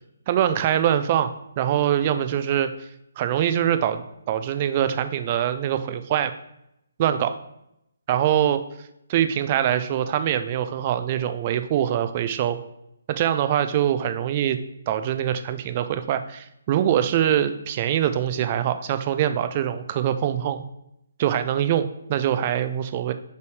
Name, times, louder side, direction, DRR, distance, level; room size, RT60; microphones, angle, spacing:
voice 1, 0.3-2.7 3.2-6.3 7.0-7.3 8.1-8.6 9.1-12.6 13.1-14.6 14.9-20.6 21.2-23.1, right 10 dB, 30° right, 10 dB, 0.4 m, -23 dB
6.6 x 3.3 x 4.8 m, 0.81 s
figure-of-eight pair, 140°, 0 cm